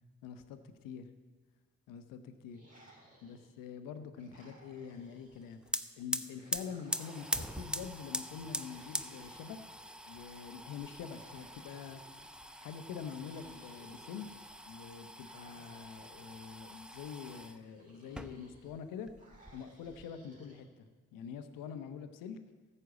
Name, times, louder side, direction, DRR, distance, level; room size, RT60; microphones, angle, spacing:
voice 1, 0.2-1.1 1.9-2.6 3.2-5.6 6.0-9.6 10.1-12.0 12.6-14.3 14.7-19.1 19.5-22.4, left 7 dB, 75° left, 9 dB, 1.0 m, -45 dB
sound 1, 2.5-3.7 4.2-5.6 6.2-7.8 8.4-10.1 11.0-12.4 13.1-14.5 15.2-16.5 17.2-18.7 19.2-20.6, right 1 dB, 25° right, 4.0 m, -60 dB
sound 2, 5.3-5.4 5.6-17.6 18.0-18.8 19.1-20.1, equal, 5° right, 0.7 m, -42 dB
14.0 x 5.6 x 8.0 m, 1.3 s
hypercardioid pair, 50°, 33 cm